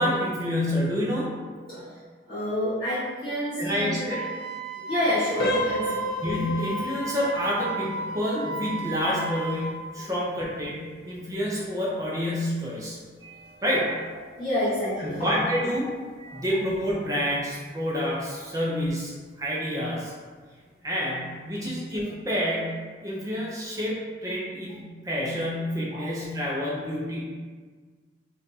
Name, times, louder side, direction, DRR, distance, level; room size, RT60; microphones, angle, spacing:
voice 1, 0.0-1.3 3.6-4.2 6.2-9.7 9.9-13.0 13.6-14.0 15.0-15.9 16.3-20.1 20.8-24.0 24.2-27.2, equal, 20° right, -5 dB, 0.4 m, -28 dB
voice 2, 2.3-4.1 4.7-6.0 10.0-10.1 13.2-13.6 14.3-15.3 16.2-16.5 25.9-26.0, left 1 dB, 25° left, -13 dB, 1.0 m, -29 dB
Wind instrument woodwind instrument, 4.1-9.8, right 2 dB, 80° right, 0.4 m, -34 dB
sound 1, 5.4-16.1 16.4-16.6 17.2-17.3 17.8-18.0, left 1 dB, 60° left, 0.4 m, -36 dB
2.6 x 2.3 x 4.0 m, 1.5 s
head